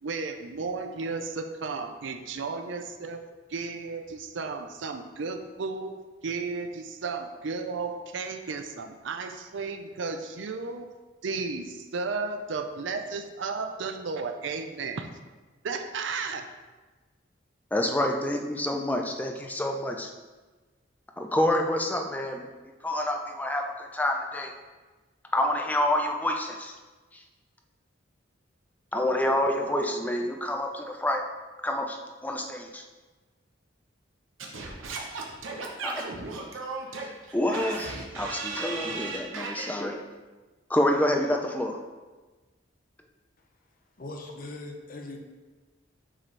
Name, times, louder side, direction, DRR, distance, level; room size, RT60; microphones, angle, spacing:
voice 1, 0.0-3.2 3.5-10.9 11.2-15.1 15.6-16.6, right 4 dB, 70° right, 7 dB, 0.5 m, -34 dB
voice 2, 17.7-20.1 21.2-22.5 22.8-24.5 25.3-26.8 27.1-27.2 28.9-31.2 31.6-32.8 35.8-36.1 37.0-40.0 40.7-41.8, left 1 dB, 10° left, 2 dB, 0.4 m, -28 dB
Singing / Scratching (performance technique), 34.4-39.7, right 3 dB, 90° right, 0.9 m, -36 dB
voice 3, 44.0-45.2, left 2 dB, 45° left, 2 dB, 0.7 m, -40 dB
7.4 x 4.2 x 3.2 m, 1.3 s
head